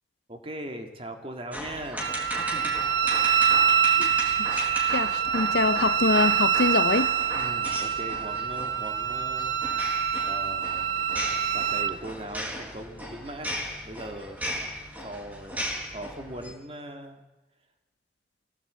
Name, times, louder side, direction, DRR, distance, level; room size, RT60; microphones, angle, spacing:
voice 1, 0.3-3.3 7.3-9.5 10.2-11.0 11.5-14.4 15.0-17.2, right 1 dB, 30° right, 2.4 m, -40 dB
sound 1, 1.5-16.5, equal, 10° right, 3.8 m, -36 dB
Wind instrument woodwind instrument, 2.0-11.9, right 8 dB, 90° right, 1.2 m, -25 dB
voice 2, 4.0-7.2, left 3 dB, 75° left, 0.7 m, -26 dB
21.5 x 16.5 x 8.4 m
head